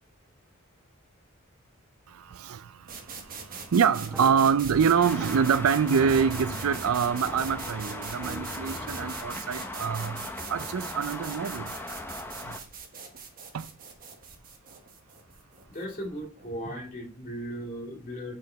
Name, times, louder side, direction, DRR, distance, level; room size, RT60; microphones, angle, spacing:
voice 1, 2.1-2.7 3.7-10.2 10.5-11.7 12.5-12.6 13.5-13.7, right 6 dB, 80° right, 0.4 m, -25 dB
sound 1, 2.9-16.6, right 5 dB, 40° right, 1.2 m, -42 dB
sound 2, 4.1-9.1, equal, 5° right, 1.2 m, -43 dB
Traffic noise roadway noise, 5.0-12.6, left 1 dB, 10° left, 0.6 m, -38 dB
voice 2, 15.7-18.3, equal, 40° left, 2.5 m, -37 dB
6.3 x 4.9 x 4.5 m
head